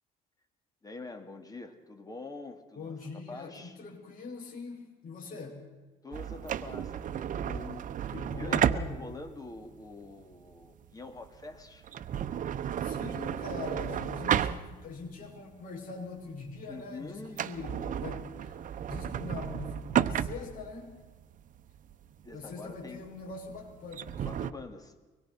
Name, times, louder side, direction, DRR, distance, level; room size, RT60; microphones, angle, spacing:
voice 1, 0.8-3.8 6.0-7.9 8.4-11.9 16.7-17.4 22.2-23.0 24.2-25.0, left 3 dB, 20° left, 6 dB, 2.8 m, -45 dB
voice 2, 2.8-5.6 8.1-9.1 12.8-18.6 18.9-21.1 22.3-24.3, left 4 dB, 55° left, 0 dB, 7.2 m, -42 dB
sound 1, 6.1-15.1 15.5-15.6 16.2-16.5 16.8-16.9 17.3-24.5, right 9 dB, 50° right, 1.0 m, -33 dB
24.5 x 21.5 x 6.1 m, 1.3 s
cardioid pair, 110°, 17 cm